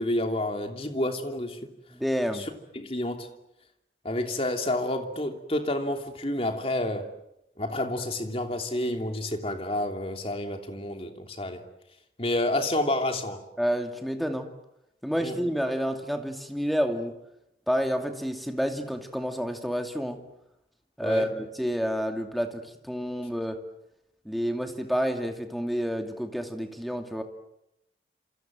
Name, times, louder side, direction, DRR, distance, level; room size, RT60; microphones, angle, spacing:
voice 1, 0.0-1.6 2.3-2.5 2.7-3.3 4.0-7.1 7.6-11.6 12.2-13.4 15.2-15.4 21.0-21.3, left 1 dB, 35° left, 3.0 m, -29 dB
voice 2, 1.9-2.5 13.6-14.5 15.0-17.1 17.7-20.2 21.0-23.6 24.2-27.2, equal, ahead, 2.5 m, -29 dB
27.5 x 27.5 x 7.7 m
head